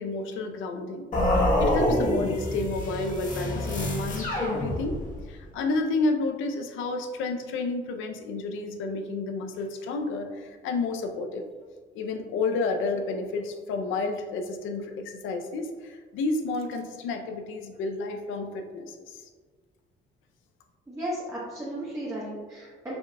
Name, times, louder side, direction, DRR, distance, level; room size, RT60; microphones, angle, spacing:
voice 1, 0.0-5.0 5.3-11.5 11.9-19.3, left 3 dB, 90° left, 5 dB, 0.5 m, -31 dB
sound 1, 1.1-5.2, left 1 dB, 40° left, 1.2 m, -26 dB
voice 2, 20.9-23.0, right 1 dB, 15° right, -8 dB, 1.1 m, -35 dB
4.9 x 3.9 x 2.3 m, 1.5 s
cardioid pair, 90°, 20 cm